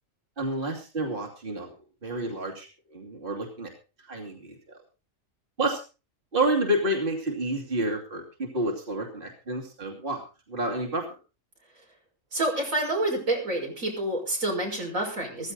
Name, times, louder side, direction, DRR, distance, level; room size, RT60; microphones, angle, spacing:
voice 1, 0.4-1.7 2.0-3.7 4.0-4.6 5.6-5.8 6.3-10.2 10.5-11.0, right 1 dB, 40° right, 1 dB, 2.8 m, -29 dB
voice 2, 12.3-15.5, right 1 dB, 90° right, 0 dB, 6.1 m, -28 dB
15.5 x 15.0 x 3.9 m, 0.32 s
omnidirectional pair, 1.4 m